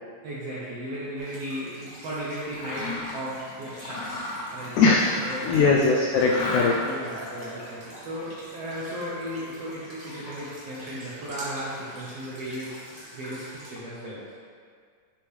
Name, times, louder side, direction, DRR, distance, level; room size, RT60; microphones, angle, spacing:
voice 1, 0.2-4.3 4.5-4.9 5.2-5.9 6.8-12.8 13.1-14.4, equal, 70° right, -8 dB, 1.5 m, -35 dB
sound 1, 1.2-13.8, equal, 50° right, 0.6 m, -45 dB
Mechanisms, 2.5-3.2 3.7-5.7 6.2-7.1, left 2 dB, 70° left, 2.0 m, -34 dB
voice 2, 4.7-6.8, left 4 dB, 90° left, -1 dB, 1.7 m, -21 dB
9.0 x 4.8 x 3.4 m, 2.1 s
omnidirectional pair, 4.0 m